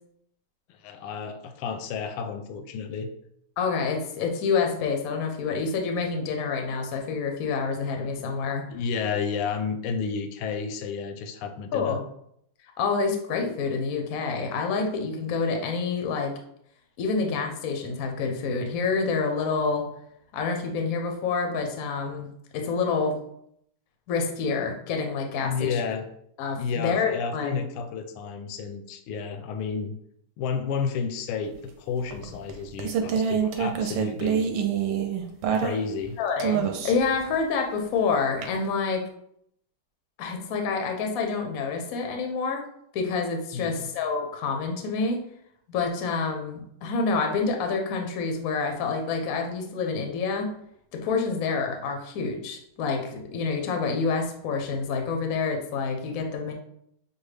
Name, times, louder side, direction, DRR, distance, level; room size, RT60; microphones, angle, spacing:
voice 1, 0.7-3.1 8.7-12.0 25.4-26.1 26.6-30.0 30.4-34.5 35.6-36.2 43.5-43.9, left 5 dB, 85° left, 7 dB, 1.5 m, -31 dB
voice 2, 3.6-8.6 11.7-12.0 12.8-16.3 17.0-19.9 20.3-22.3 22.5-23.2 24.1-25.8 26.4-27.6 36.2-39.0 40.2-42.7 42.9-45.2 45.7-50.5 50.9-56.5, left 4 dB, 70° left, 3 dB, 0.8 m, -27 dB
sound 1, 32.1-36.1 36.4-37.1 38.4-38.5, right 7 dB, 75° right, 1.2 m, -26 dB
6.4 x 2.2 x 3.2 m, 0.72 s
omnidirectional pair, 2.4 m